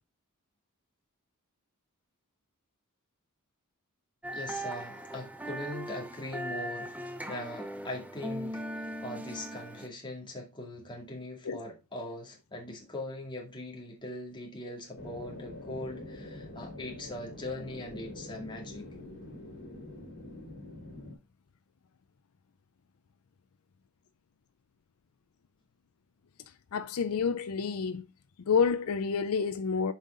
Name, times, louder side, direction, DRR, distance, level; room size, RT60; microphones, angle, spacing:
sound 1, 4.2-9.9, equal, 5° right, 0.8 m, -39 dB
voice 1, 4.3-7.0 7.3-18.9, left 1 dB, 20° left, 2.3 m, -41 dB
sound 2, 15.0-21.1, left 1 dB, 50° left, 3.3 m, -45 dB
voice 2, 26.7-28.0 28.5-29.9, left 6 dB, 70° left, 0.5 m, -28 dB
7.4 x 5.5 x 3.7 m
head